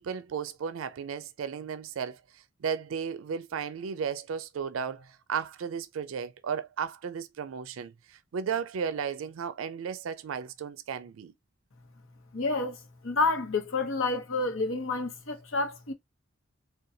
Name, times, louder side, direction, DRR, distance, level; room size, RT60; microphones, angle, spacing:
voice 1, 0.0-11.3, right 7 dB, 80° right, 0.4 m, -34 dB
voice 2, 12.3-15.9, left 3 dB, 75° left, 0.9 m, -29 dB
3.9 x 2.3 x 2.6 m
head